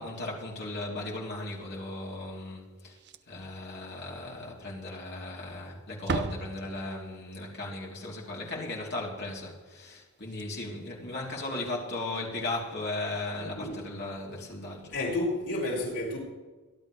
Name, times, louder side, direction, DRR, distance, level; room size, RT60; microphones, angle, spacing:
voice 1, 0.0-3.0 3.3-14.9, left 2 dB, 50° left, 3.6 m, -37 dB
Slam, 2.9-3.5 3.8-3.9 4.4-4.5 5.3-5.6 5.9-7.2 9.9-10.0 10.2-10.4 11.9-12.1, right 3 dB, 50° right, 0.7 m, -36 dB
voice 2, 13.4-13.9 14.9-16.2, left 2 dB, 85° left, 6.3 m, -31 dB
24.5 x 12.0 x 3.4 m
head